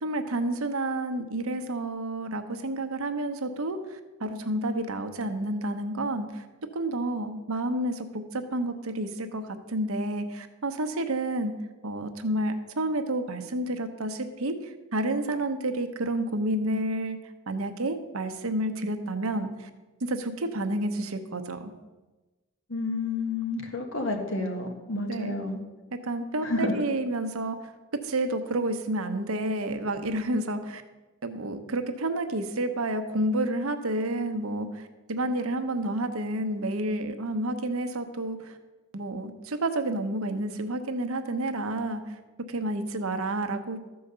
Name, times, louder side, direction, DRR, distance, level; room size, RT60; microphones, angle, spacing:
voice 1, 0.0-6.4 6.7-11.5 11.8-17.2 17.5-19.7 20.0-21.7 25.1-25.4 25.9-27.6 28.0-30.8 31.2-38.6 38.9-42.1 42.5-43.8, right 1 dB, 75° right, 8 dB, 0.9 m, -30 dB
voice 2, 22.7-25.6 26.4-26.7, left 2 dB, 65° left, 3 dB, 1.5 m, -30 dB
13.5 x 4.8 x 6.7 m, 1.2 s
head